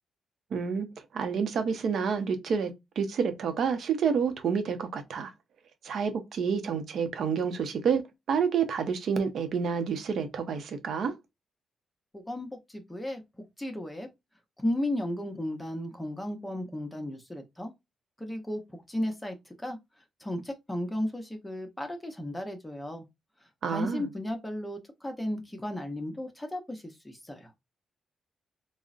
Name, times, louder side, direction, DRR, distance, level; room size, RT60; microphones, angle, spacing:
voice 1, 0.5-0.9 1.1-5.3 5.8-11.1 23.6-24.1, right 6 dB, 70° right, 0.6 m, -29 dB
voice 2, 12.1-13.2 13.6-14.1 14.6-17.7 18.2-19.8 20.2-23.0 23.7-27.5, left 1 dB, 10° left, 0.7 m, -34 dB
3.7 x 2.0 x 2.4 m
cardioid pair, 80°, 0 cm